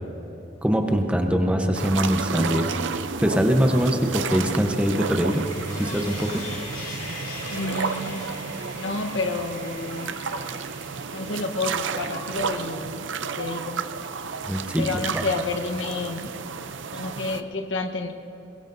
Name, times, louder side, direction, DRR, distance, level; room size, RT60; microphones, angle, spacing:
voice 1, 0.6-2.8 3.2-5.4 5.8-6.4 14.4-14.8, equal, 5° right, 3 dB, 0.9 m, -22 dB
sound 1, 1.7-17.4, right 5 dB, 80° right, 0.6 m, -32 dB
Sawing, 4.2-11.6, left 2 dB, 40° left, 2.5 m, -41 dB
voice 2, 7.5-8.2 8.7-10.2 11.1-13.8 14.8-16.3 16.9-18.1, left 3 dB, 85° left, 5 dB, 1.1 m, -30 dB
22.0 x 22.0 x 2.7 m, 2.8 s
head